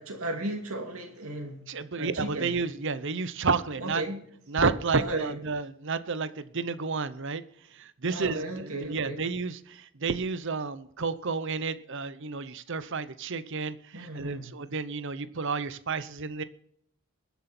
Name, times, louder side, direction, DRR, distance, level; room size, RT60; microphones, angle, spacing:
voice 1, 0.0-1.6 2.0-2.5 3.8-4.2 4.9-5.4 8.1-9.2 13.9-14.5, right 1 dB, 80° right, 2 dB, 2.6 m, -35 dB
voice 2, 1.7-4.0 4.5-7.4 7.7-16.4, right 4 dB, 60° right, 14 dB, 0.8 m, -31 dB
21.5 x 8.1 x 4.4 m, 0.70 s
head